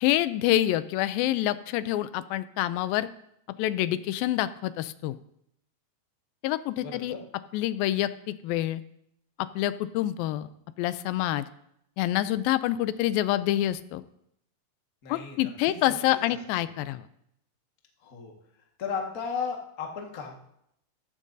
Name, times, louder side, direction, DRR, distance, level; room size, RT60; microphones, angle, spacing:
voice 1, 0.0-3.1 3.6-5.1 6.4-7.2 7.5-8.8 9.4-10.5 10.8-11.4 12.0-14.0 15.1-17.0, left 14 dB, 85° left, 14 dB, 2.3 m, -27 dB
voice 2, 6.8-7.2 15.0-15.9 18.0-18.3 18.8-20.3, left 6 dB, 45° left, 0 dB, 1.1 m, -35 dB
14.5 x 12.5 x 2.7 m, 0.74 s
omnidirectional pair, 4.1 m